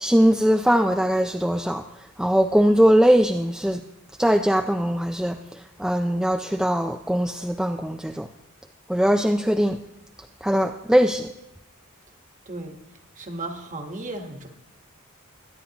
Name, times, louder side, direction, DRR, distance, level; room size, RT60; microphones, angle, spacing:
voice 1, 0.0-1.8 2.2-3.8 4.2-8.3 8.9-9.8 10.4-11.3, equal, 5° right, 4 dB, 0.3 m, -21 dB
voice 2, 12.5-12.8 13.2-14.5, right 2 dB, 35° right, 5 dB, 1.3 m, -35 dB
22.5 x 9.7 x 2.9 m, 0.90 s
head